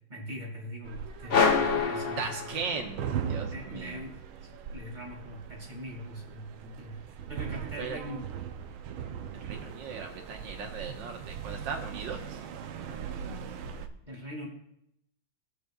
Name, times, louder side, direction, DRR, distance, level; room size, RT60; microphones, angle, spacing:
voice 1, 0.1-2.4 3.5-4.2 4.7-8.2 14.1-14.5, equal, 20° right, -1 dB, 2.4 m, -41 dB
sound 1, 0.8-13.9, right 7 dB, 85° right, 1.5 m, -39 dB
sound 2, 1.3-3.1, left 5 dB, 55° left, 0.6 m, -26 dB
voice 2, 2.2-3.0 3.3-4.0 7.8-8.0 9.3-12.4, right 5 dB, 70° right, 2 dB, 1.9 m, -37 dB
19.0 x 6.7 x 2.4 m, 0.76 s
omnidirectional pair, 2.2 m